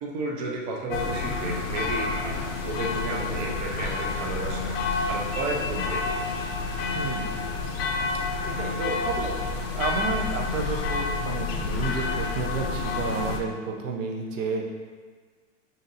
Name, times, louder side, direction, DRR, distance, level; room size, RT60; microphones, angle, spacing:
voice 1, 0.0-4.8 5.1-6.3 8.8-9.0, right 2 dB, 35° right, -1 dB, 0.4 m, -32 dB
sound 1, 0.9-13.4, left 4 dB, 50° left, 0.5 m, -29 dB
sound 2, 5.3-8.9, left 5 dB, 15° left, 1.3 m, -42 dB
voice 2, 6.9-7.3 8.4-9.3 9.7-14.7, right 4 dB, 90° right, 1 dB, 0.7 m, -31 dB
2.7 x 2.6 x 3.9 m, 1.5 s
supercardioid pair, 150°, 38 cm